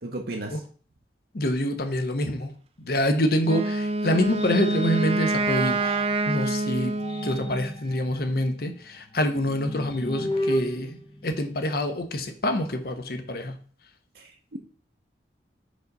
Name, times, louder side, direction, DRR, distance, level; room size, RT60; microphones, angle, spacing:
voice 1, 0.0-0.6 14.1-14.6, right 2 dB, 55° right, 1 dB, 0.8 m, -35 dB
voice 2, 1.3-7.0 7.2-10.9 11.2-13.6, left 1 dB, 55° left, 7 dB, 0.8 m, -26 dB
Wind instrument woodwind instrument, 3.4-7.6, right 2 dB, 30° right, 0.4 m, -26 dB
sound 1, 3.7-6.3 6.8-12.0, equal, 30° left, 0.6 m, -35 dB
5.1 x 4.0 x 5.3 m, 0.43 s
head